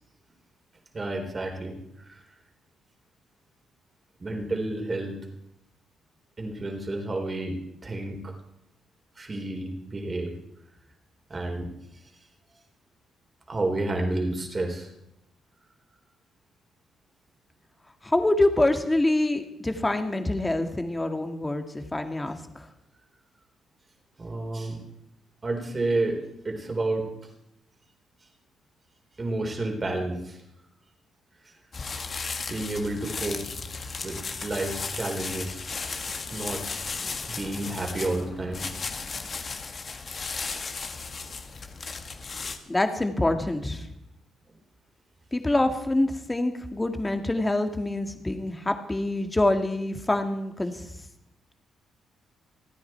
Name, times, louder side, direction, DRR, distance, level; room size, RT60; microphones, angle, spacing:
voice 1, 0.9-2.4 4.2-5.2 6.4-8.4 9.2-10.4 11.3-12.6 13.5-14.9 24.2-24.8 25.4-27.3 28.2-28.3 29.2-30.4 31.3-31.6 32.5-33.4 34.0-35.6 36.3-36.6 37.2-38.6 38.9-39.2 44.5-44.6, right 2 dB, 30° right, 3 dB, 4.2 m, -31 dB
voice 2, 18.0-22.4 42.7-43.8 45.3-50.7, left 2 dB, 15° left, 6 dB, 2.0 m, -25 dB
sound 1, 31.7-42.6, left 4 dB, 40° left, 1.8 m, -35 dB
29.0 x 9.7 x 4.6 m, 0.81 s
cardioid pair, 90°, 0 cm